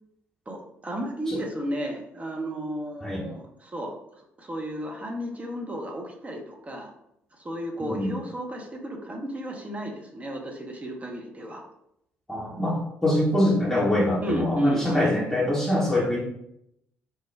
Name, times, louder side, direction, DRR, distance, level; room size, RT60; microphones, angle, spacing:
voice 1, 0.5-4.0 4.4-6.9 7.4-11.6 14.2-15.1, equal, 25° right, 1 dB, 0.7 m, -33 dB
voice 2, 7.8-8.1 12.3-16.2, left 1 dB, 10° left, -6 dB, 0.9 m, -24 dB
3.3 x 2.1 x 3.2 m, 0.78 s
figure-of-eight pair, 45°, 6 cm